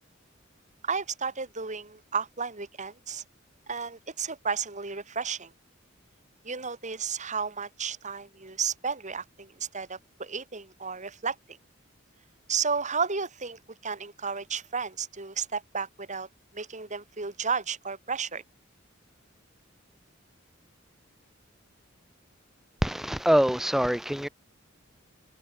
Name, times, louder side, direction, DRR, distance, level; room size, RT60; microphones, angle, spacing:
voice 1, 0.8-3.2 3.7-5.5 6.4-11.6 12.5-16.3 16.5-18.4, right 5 dB, 35° right, 3.1 m, -33 dB
voice 2, 22.8-24.3, equal, ahead, 0.5 m, -24 dB
head